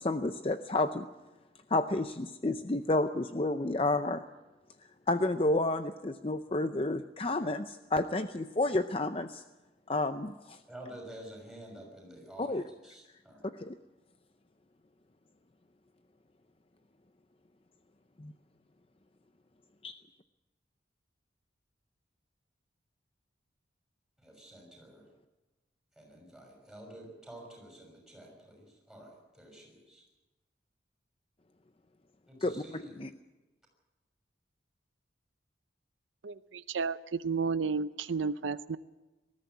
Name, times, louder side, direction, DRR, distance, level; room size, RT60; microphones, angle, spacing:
voice 1, 0.0-1.1 1.7-4.2 5.1-9.4 9.9-10.3 12.4-12.6 13.5-13.8 18.2-18.3 19.8-19.9 32.4-32.6 33.0-33.1, left 2 dB, 30° left, 9 dB, 0.6 m, -30 dB
voice 2, 10.7-13.5 24.2-25.1 26.0-29.1 29.3-30.0 32.3-33.0, right 1 dB, ahead, 0 dB, 6.0 m, -49 dB
voice 3, 36.2-37.0 37.2-38.8, right 5 dB, 85° right, 14 dB, 0.6 m, -32 dB
20.0 x 14.0 x 9.5 m, 1.1 s
head